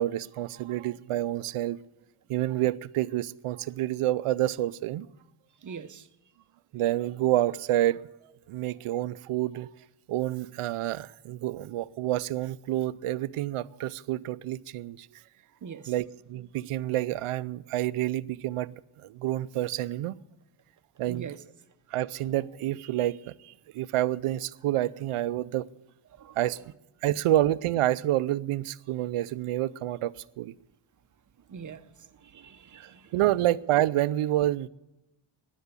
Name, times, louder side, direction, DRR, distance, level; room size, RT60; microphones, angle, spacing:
voice 1, 0.0-1.8 2.3-5.1 6.7-8.0 8.5-9.7 10.1-15.1 15.9-18.8 19.0-20.2 21.0-21.3 21.9-25.7 26.3-26.6 27.0-30.5 32.8-34.7, right 14 dB, 85° right, 0.6 m, -28 dB
voice 2, 5.6-6.0 15.6-15.9 21.1-21.4 26.2-26.4 31.5-31.8 32.2-33.0, right 6 dB, 40° right, 0.8 m, -42 dB
13.0 x 10.0 x 8.3 m
wide cardioid pair, 120°, 50 cm